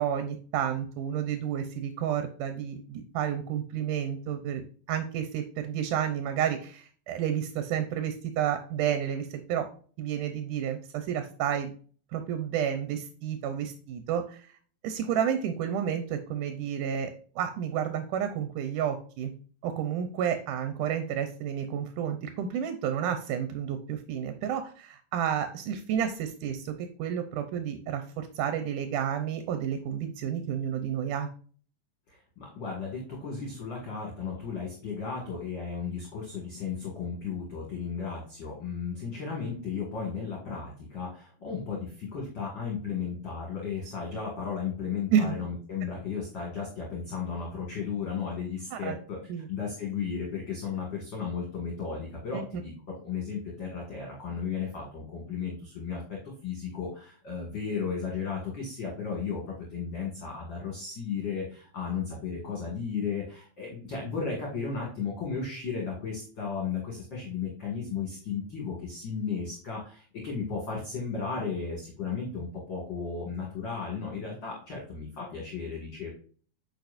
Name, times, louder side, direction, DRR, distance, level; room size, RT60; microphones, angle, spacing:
voice 1, 0.0-9.7 10.0-11.7 12.1-14.5 14.8-19.3 19.6-31.3 45.1-45.3 48.7-49.0 49.3-49.5 52.3-52.4, right 9 dB, 85° right, 8 dB, 2.4 m, -31 dB
voice 2, 32.1-49.2 49.5-52.7 53.0-76.1, left 5 dB, 40° left, -2 dB, 2.6 m, -34 dB
9.2 x 5.0 x 2.6 m, 0.42 s
omnidirectional pair, 3.6 m